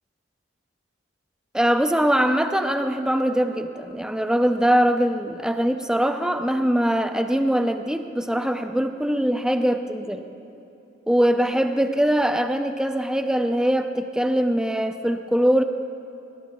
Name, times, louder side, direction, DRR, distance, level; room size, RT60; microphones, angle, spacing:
voice 1, 1.5-10.2 11.1-15.6, equal, 5° right, 6 dB, 0.5 m, -22 dB
22.0 x 19.0 x 2.3 m, 2.9 s
head